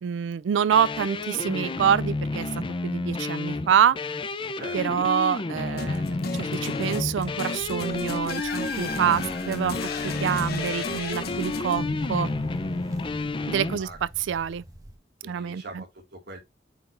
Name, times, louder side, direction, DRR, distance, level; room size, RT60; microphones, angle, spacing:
voice 1, 0.0-2.5 2.8-4.0 4.7-6.0 6.3-9.8 10.0-12.3 13.5-14.6 15.2-15.8, right 8 dB, 85° right, 0.3 m, -26 dB
sound 1, 0.7-13.8, left 3 dB, 30° left, 0.5 m, -31 dB
sound 2, 5.8-14.0, left 3 dB, 55° left, 0.9 m, -33 dB
sound 3, 7.6-15.0, right 1 dB, 20° right, 1.1 m, -47 dB
voice 2, 15.2-16.4, right 2 dB, 60° right, 2.1 m, -42 dB
8.9 x 4.8 x 2.5 m
head